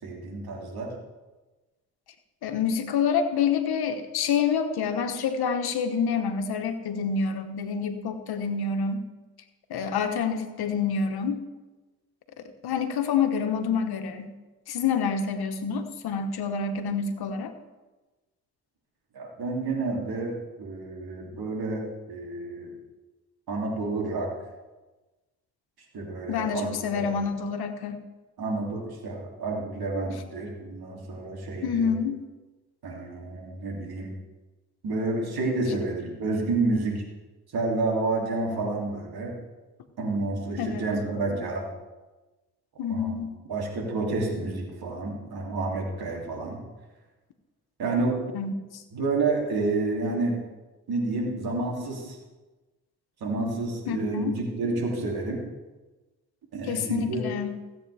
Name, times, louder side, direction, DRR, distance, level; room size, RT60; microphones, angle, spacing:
voice 1, 0.0-0.9 19.1-22.7 23.5-24.3 25.9-27.1 28.4-31.9 32.8-34.1 34.8-37.0 37.5-39.4 40.0-41.7 42.9-43.1 43.5-46.6 47.8-48.5 48.9-50.4 50.9-52.2 53.2-55.4 56.5-57.3, right 3 dB, 70° right, -1 dB, 3.0 m, -29 dB
voice 2, 2.4-9.1 9.7-11.4 12.4-14.3 14.7-17.5 26.3-28.0 31.6-32.2 40.6-40.8 42.8-43.3 48.3-48.8 53.9-54.3 56.7-57.5, left 6 dB, 75° left, 7 dB, 1.2 m, -27 dB
16.0 x 8.4 x 3.5 m, 1.2 s
supercardioid pair, 40°, 38 cm